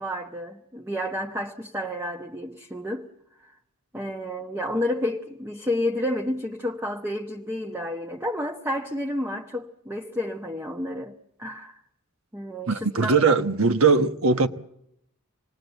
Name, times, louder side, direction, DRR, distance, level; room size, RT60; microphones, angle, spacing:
voice 1, 0.0-3.1 3.4-3.5 3.9-11.8 12.3-13.4, left 1 dB, 10° right, 1.0 m, -30 dB
voice 2, 12.7-14.5, right 4 dB, 65° right, 1.2 m, -20 dB
27.5 x 20.0 x 8.1 m
head